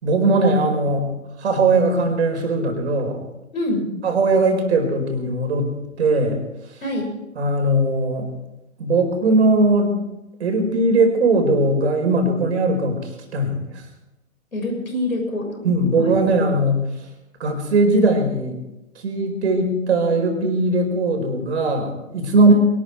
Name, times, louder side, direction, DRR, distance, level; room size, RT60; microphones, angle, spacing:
voice 1, 0.0-1.1 1.4-3.2 4.0-6.4 7.4-8.3 8.8-10.0 10.4-13.8 15.6-16.8 17.4-18.6 18.9-22.5, right 2 dB, 50° right, 4 dB, 4.6 m, -19 dB
voice 2, 3.5-3.9 6.8-7.1 14.5-15.6 16.0-16.1, left 1 dB, 80° left, 2 dB, 6.8 m, -25 dB
23.0 x 12.5 x 4.7 m, 0.93 s
figure-of-eight pair, 130°, 42 cm